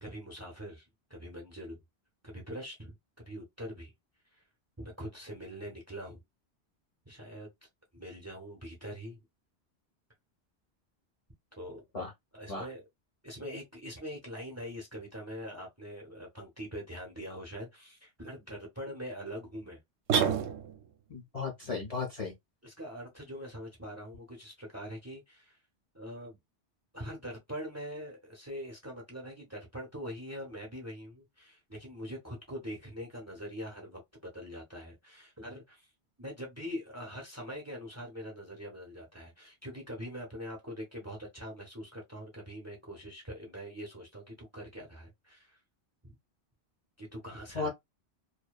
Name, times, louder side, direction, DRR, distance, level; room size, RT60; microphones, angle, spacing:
voice 1, 0.0-1.8 2.2-3.0 3.3-3.9 4.8-6.2 7.1-7.5 7.9-9.2 11.5-11.8 12.3-12.8 13.2-19.8 22.6-25.6 25.9-26.4 26.9-35.9 36.2-45.6 46.0-46.2 47.0-47.7, equal, 15° right, 0.7 m, -43 dB
sound 1, 20.1-21.0, right 7 dB, 75° right, 0.9 m, -28 dB
voice 2, 21.1-22.3 47.5-47.7, left 4 dB, 40° left, 0.6 m, -35 dB
2.7 x 2.2 x 2.2 m
omnidirectional pair, 1.1 m